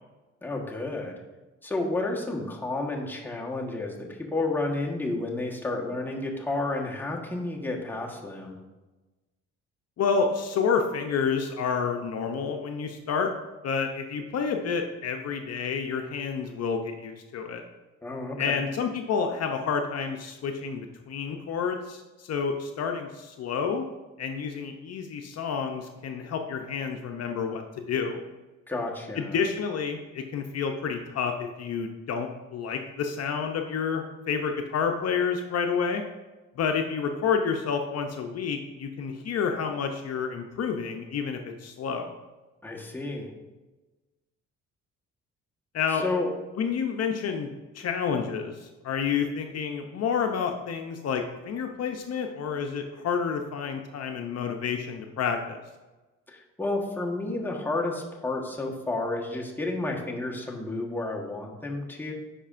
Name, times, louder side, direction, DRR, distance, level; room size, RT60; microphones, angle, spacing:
voice 1, 0.4-1.2 1.6-8.6 18.0-18.6 28.7-29.3 42.6-43.3 46.0-46.3 56.3-62.1, left 2 dB, 5° left, -1 dB, 1.2 m, -31 dB
voice 2, 10.0-13.3 13.6-17.6 18.4-23.8 24.2-28.2 29.2-36.0 36.6-42.1 45.7-46.0 46.6-47.5 47.7-55.6, left 6 dB, 55° left, 4 dB, 0.6 m, -29 dB
9.9 x 5.0 x 2.5 m, 1.2 s
cardioid pair, 90°, 30 cm